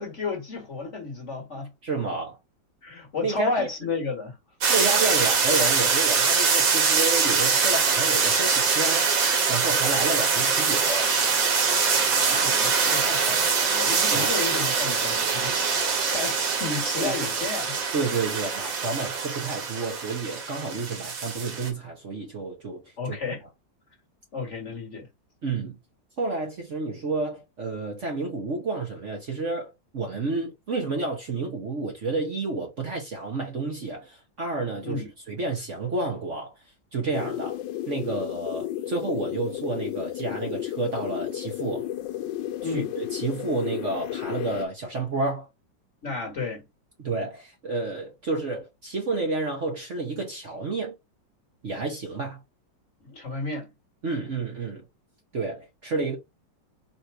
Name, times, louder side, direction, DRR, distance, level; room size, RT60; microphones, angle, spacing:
voice 1, 0.0-1.7 2.8-4.4 12.1-17.8 23.0-23.4 24.3-25.1 34.8-35.1 42.6-42.9 46.0-46.7 53.0-53.7, left 3 dB, 40° left, 1.7 m, -32 dB
voice 2, 1.8-2.4 3.2-3.7 4.7-11.1 14.1-14.3 17.0-17.1 17.9-22.8 23.1-23.2 25.4-25.8 26.2-35.0 35.3-36.5 36.9-37.6 37.9-41.9 42.6-45.5 47.0-50.9 51.6-52.4 54.0-54.8 55.3-56.2, right 3 dB, 45° right, 1.2 m, -30 dB
sound 1, 4.6-21.7, right 5 dB, 80° right, 2.1 m, -23 dB
sound 2, 37.1-44.7, left 12 dB, 90° left, 1.4 m, -33 dB
4.2 x 2.6 x 4.6 m
omnidirectional pair, 2.0 m